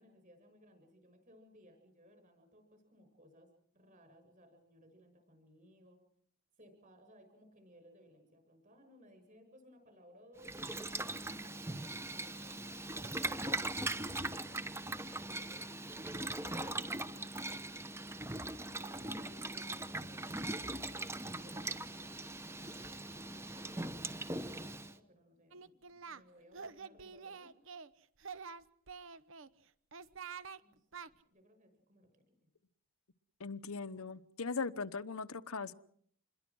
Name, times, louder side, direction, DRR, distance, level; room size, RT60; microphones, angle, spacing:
voice 1, 0.0-6.0 6.6-14.8 15.2-17.7 18.8-27.5 30.6-32.4, equal, 35° right, 7 dB, 7.4 m, -62 dB
Boiling, 10.4-24.9, right 2 dB, 10° right, 1.0 m, -40 dB
Singing, 25.5-26.2 26.5-27.9 28.2-29.5 29.9-30.6 30.9-31.1, right 5 dB, 65° right, 1.0 m, -47 dB
voice 2, 33.4-35.7, left 4 dB, 85° left, 13 dB, 1.0 m, -39 dB
27.5 x 21.5 x 6.3 m, 0.64 s
head